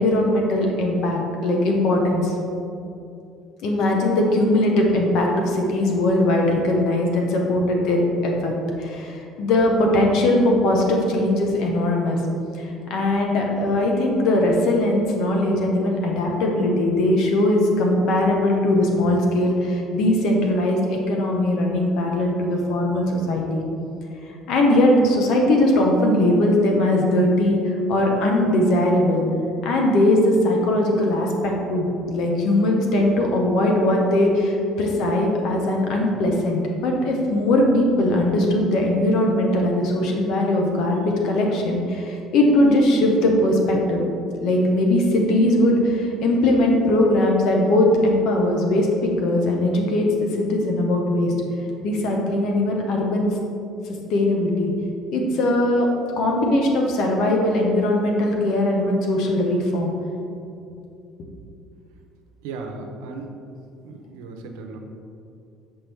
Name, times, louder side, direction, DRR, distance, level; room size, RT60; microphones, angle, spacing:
voice 1, 0.0-2.3 3.6-12.2 12.5-12.6 12.9-23.6 24.5-29.2 29.6-44.0 44.4-48.9 49.2-51.3 51.8-53.3 54.1-54.7 55.1-55.9 56.2-59.9, left 1 dB, 70° left, 1 dB, 1.0 m, -20 dB
voice 2, 62.4-63.3 63.8-64.8, right 3 dB, 90° right, 3 dB, 0.6 m, -36 dB
7.0 x 4.5 x 3.5 m, 2.6 s
supercardioid pair, 90°, 0 cm